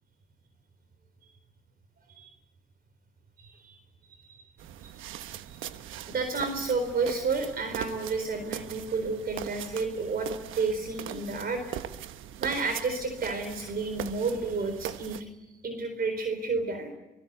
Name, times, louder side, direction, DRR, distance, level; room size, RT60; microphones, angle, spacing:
voice 1, 3.4-3.8 4.2-4.4 4.8-4.9 5.5-5.6 6.1-11.6 12.4-16.9, right 4 dB, 50° right, 7 dB, 4.2 m, -31 dB
sound 1, 4.6-15.2, right 11 dB, 85° right, 1.1 m, -40 dB
24.0 x 21.0 x 8.3 m, 1.0 s
cardioid pair, 90°, 20 cm